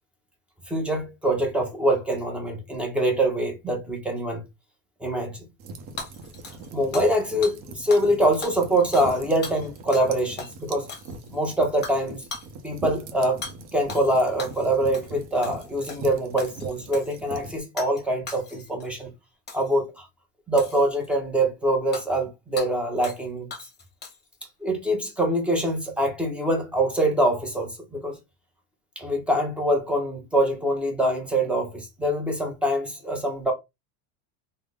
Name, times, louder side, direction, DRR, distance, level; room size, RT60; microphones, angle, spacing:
voice 1, 0.7-4.4 5.0-5.5 6.7-10.9 11.3-12.3 12.6-13.4 13.7-19.1 19.5-20.1 20.5-23.5 24.6-28.2 29.0-33.5, right 1 dB, 5° right, 0.6 m, -24 dB
sound 1, 5.6-17.6, right 3 dB, 50° right, 0.8 m, -42 dB
Hammer / Shatter, 6.0-7.2 7.4-7.6 7.9-8.2 8.4-10.1 10.4-10.5 10.9-11.4 11.8-12.0 12.3-12.5 13.4-13.6 13.9-14.6 14.9-15.2 15.4-16.1 16.4-17.2 17.8-18.0 18.3-18.9 19.5-19.8 20.6-21.1 21.9-22.1 22.6-22.7 23.0-23.2 23.5-24.4, left 4 dB, 25° left, 1.0 m, -38 dB
3.5 x 2.2 x 3.5 m
cardioid pair, 160°, 42 cm